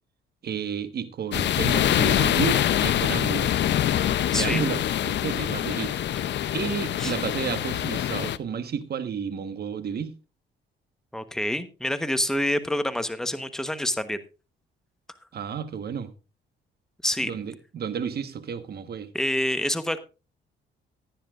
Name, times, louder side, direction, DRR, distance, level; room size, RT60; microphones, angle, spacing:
voice 1, 0.4-3.6 4.3-6.0 6.5-10.1 15.3-16.1 17.2-19.1, right 7 dB, 55° right, 1.4 m, -31 dB
sound 1, 1.3-8.4, left 11 dB, 65° left, 0.7 m, -24 dB
voice 2, 4.3-4.6 7.0-7.1 11.1-14.2 17.0-17.3 19.1-20.0, left 1 dB, 5° left, 1.1 m, -27 dB
17.5 x 10.0 x 2.5 m
cardioid pair, 90°, 20 cm